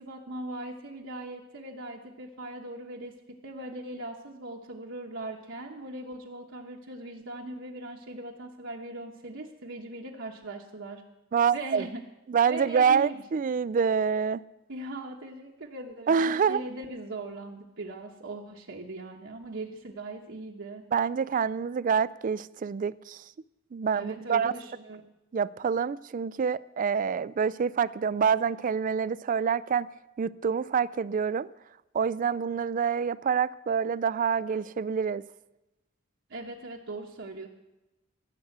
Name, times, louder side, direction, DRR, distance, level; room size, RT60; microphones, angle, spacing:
voice 1, 0.0-11.0 11.5-12.0 12.5-13.2 14.7-20.8 23.9-25.0 36.3-37.5, right 2 dB, 65° right, 1.1 m, -39 dB
voice 2, 11.3-11.9 12.3-14.4 16.1-16.6 20.9-23.2 23.7-24.5 25.3-29.9 30.2-31.5 31.9-35.2, right 6 dB, 40° right, 0.3 m, -26 dB
15.0 x 6.9 x 7.9 m
head